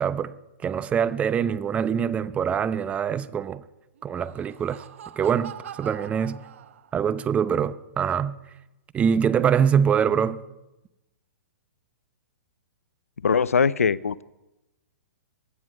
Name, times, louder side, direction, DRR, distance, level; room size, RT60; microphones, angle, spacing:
voice 1, 0.0-0.3 0.6-3.6 4.0-4.8 5.2-6.4 6.9-8.4 8.9-10.4, right 7 dB, 15° right, 0.7 m, -24 dB
Laughter, 4.0-7.1, right 9 dB, 65° right, 1.1 m, -43 dB
voice 2, 13.2-14.2, left 6 dB, 90° left, 0.5 m, -21 dB
23.5 x 9.8 x 4.8 m
hypercardioid pair, 130°, 8 cm